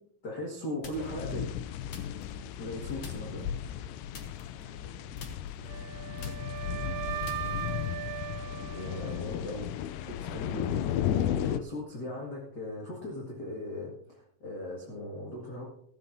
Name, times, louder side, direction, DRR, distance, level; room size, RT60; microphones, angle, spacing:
voice 1, 0.2-1.5 2.6-3.5 8.7-9.7 10.0-15.7, left 1 dB, 40° left, -3 dB, 1.7 m, -38 dB
sound 1, 0.8-1.3 1.9-2.7 3.0-3.5 4.1-4.9 5.2-8.0, left 3 dB, 65° left, 1.3 m, -47 dB
sound 2, 1.0-11.6, left 10 dB, 85° left, 1.8 m, -34 dB
voice 2, 4.4-7.5, right 2 dB, 25° right, -3 dB, 4.6 m, -56 dB
Wind instrument woodwind instrument, 5.7-9.8, right 12 dB, 80° right, 2.3 m, -39 dB
14.5 x 14.5 x 2.7 m, 0.68 s
omnidirectional pair, 4.4 m